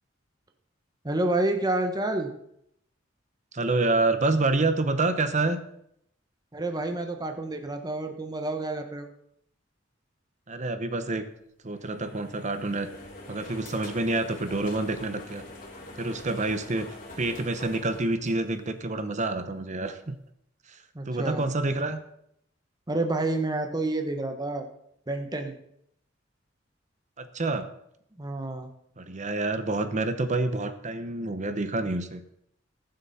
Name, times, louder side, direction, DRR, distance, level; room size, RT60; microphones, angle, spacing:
voice 1, 1.0-2.3 6.5-9.1 20.9-21.4 22.9-24.7 25.1-25.5 28.2-28.7, right 2 dB, 20° right, 5 dB, 1.2 m, -29 dB
voice 2, 3.5-5.6 10.5-11.3 11.6-12.9 13.3-15.4 16.0-16.9 17.2-20.1 20.7-22.0 27.2-27.7 29.0-32.2, right 2 dB, 40° right, 10 dB, 0.9 m, -28 dB
sound 1, 11.7-19.0, left 1 dB, 45° left, 3.0 m, -45 dB
20.0 x 7.7 x 4.2 m, 0.74 s
head